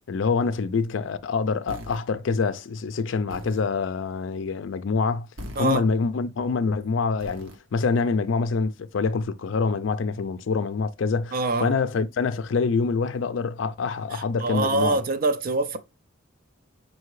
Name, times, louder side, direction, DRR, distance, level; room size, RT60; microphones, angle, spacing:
voice 1, 0.1-5.3 5.6-11.4 11.6-15.0, left 4 dB, 65° left, 0.4 m, -25 dB
sound 1, 1.7-2.0 3.3-3.6 5.4-5.8 7.2-7.6, equal, 70° right, 0.9 m, -39 dB
voice 2, 11.3-11.7 14.1-15.8, right 3 dB, 45° right, 0.4 m, -25 dB
5.7 x 2.7 x 3.1 m
head